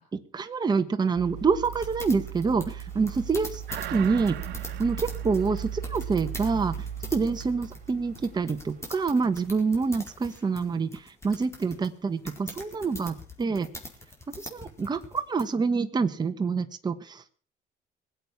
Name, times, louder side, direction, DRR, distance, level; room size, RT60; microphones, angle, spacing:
voice 1, 0.1-3.6 3.9-4.4 4.8-6.9 7.1-13.7 14.4-17.3, right 4 dB, 25° right, 8 dB, 1.2 m, -27 dB
sound 1, 1.2-9.4 9.8-9.9, right 9 dB, 45° right, 4.0 m, -38 dB
sound 2, 1.6-15.5, left 1 dB, 15° left, 4.5 m, -44 dB
sound 3, 3.7-6.6 7.0-7.1, right 13 dB, 80° right, 1.1 m, -40 dB
20.0 x 8.2 x 7.0 m, 0.41 s
cardioid pair, 110°, 17 cm